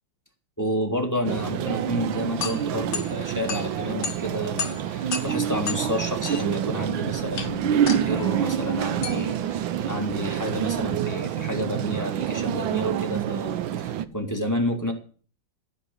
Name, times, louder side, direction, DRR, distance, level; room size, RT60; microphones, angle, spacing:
voice 1, 0.6-14.9, equal, 10° left, 2 dB, 1.8 m, -30 dB
sound 1, 1.2-14.0, right 10 dB, 75° right, 1.5 m, -27 dB
sound 2, 2.0-11.1, left 6 dB, 60° left, 1.8 m, -36 dB
Electric guitar / Strum, 8.0-13.2, right 3 dB, 20° right, 3.4 m, -40 dB
15.5 x 5.3 x 8.3 m, 0.41 s
omnidirectional pair, 2.2 m